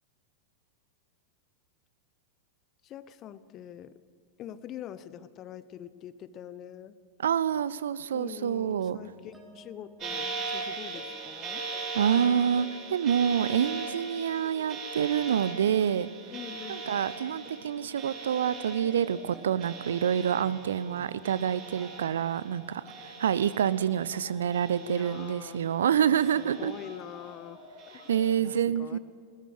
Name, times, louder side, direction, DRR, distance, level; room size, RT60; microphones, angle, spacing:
voice 1, 2.8-3.9 4.4-6.9 8.1-11.6 16.3-17.0 20.7-21.5 24.8-25.6 26.4-27.6 27.9-28.1 28.4-29.0, left 10 dB, 35° left, 16 dB, 0.9 m, -44 dB
voice 2, 7.2-9.0 11.9-16.1 16.7-26.8 28.1-29.0, right 8 dB, 65° right, 18 dB, 0.6 m, -27 dB
sound 1, 8.5-23.1, right 3 dB, 10° right, 3.6 m, -53 dB
sound 2, 10.0-22.6 22.9-24.1 24.5-25.7 26.1-27.2 27.8-28.3, right 3 dB, 35° right, 5.2 m, -40 dB
sound 3, 21.0-28.4, left 4 dB, 65° left, 4.1 m, -53 dB
20.5 x 20.0 x 6.5 m, 2.2 s
figure-of-eight pair, 90°, 0 cm